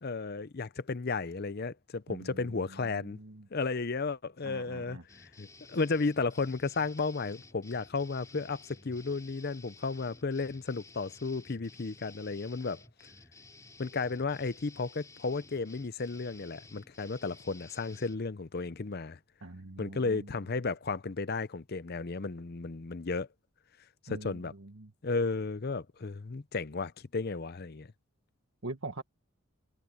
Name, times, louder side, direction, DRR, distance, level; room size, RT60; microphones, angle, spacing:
voice 1, 0.0-3.2 3.5-12.8 13.8-19.2 19.8-23.3 24.0-24.5 25.0-27.9, left 4 dB, 45° left, 0.6 m, -34 dB
voice 2, 2.1-3.5 4.4-5.0 19.4-20.3 24.1-24.9 28.6-29.0, right 2 dB, 65° right, 1.5 m, -44 dB
sound 1, 5.1-18.2, left 3 dB, 15° left, 2.8 m, -55 dB
head